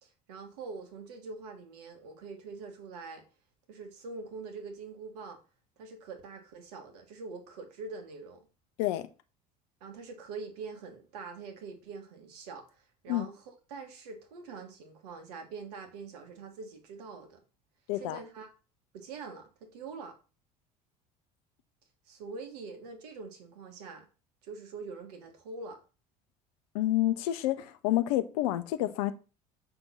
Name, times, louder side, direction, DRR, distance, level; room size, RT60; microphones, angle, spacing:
voice 1, 0.0-3.2 3.7-5.4 5.8-8.4 9.8-13.4 13.7-17.4 18.0-18.5 18.9-20.2 22.1-24.0 24.4-25.8, right 4 dB, 70° right, 1.5 m, -44 dB
voice 2, 17.9-18.2 26.7-29.1, left 14 dB, 65° left, 0.7 m, -29 dB
6.0 x 3.5 x 5.5 m
hypercardioid pair, 65°, 21 cm